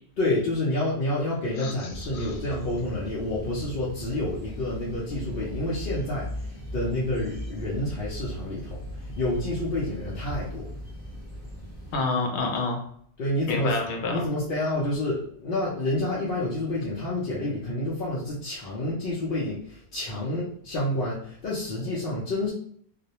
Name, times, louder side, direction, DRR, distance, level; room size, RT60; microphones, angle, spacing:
voice 1, 0.2-10.7 13.2-13.8 14.1-22.5, left 1 dB, 60° left, -7 dB, 0.7 m, -29 dB
sound 1, 1.9-12.0, right 1 dB, 10° right, 0.8 m, -38 dB
voice 2, 11.9-12.8 13.5-14.2, left 3 dB, 85° left, 2 dB, 0.9 m, -28 dB
2.3 x 2.1 x 2.8 m, 0.64 s
omnidirectional pair, 1.1 m